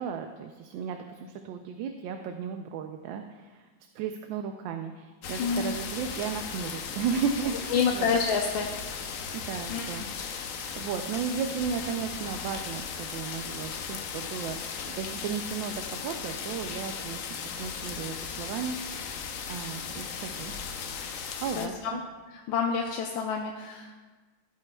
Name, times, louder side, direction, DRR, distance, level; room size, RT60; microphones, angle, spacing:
voice 1, 0.0-3.7 3.9-8.1 9.3-10.5 10.8-18.8 19.5-21.0 21.4-22.0, right 7 dB, 80° right, 5 dB, 1.3 m, -35 dB
sound 1, 5.2-21.7, left 6 dB, 65° left, 0.8 m, -37 dB
voice 2, 5.4-5.7 7.7-8.7 9.7-10.1 20.9-21.1 21.5-22.0 22.3-23.9, left 6 dB, 85° left, 1 dB, 1.5 m, -28 dB
15.0 x 8.4 x 2.3 m, 1.3 s
omnidirectional pair, 2.1 m